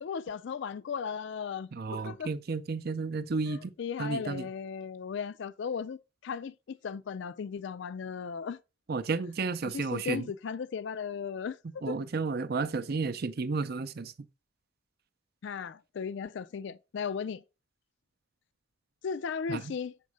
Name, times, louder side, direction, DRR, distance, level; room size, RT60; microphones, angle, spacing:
voice 1, 0.0-2.3 3.5-8.6 9.6-11.6 11.9-12.1 15.4-17.4 19.0-20.0, left 6 dB, 55° left, 0.3 m, -36 dB
voice 2, 1.7-3.7 4.0-4.5 8.9-10.3 11.8-14.1 19.5-19.6, right 4 dB, 50° right, 0.5 m, -32 dB
7.3 x 5.3 x 4.7 m
head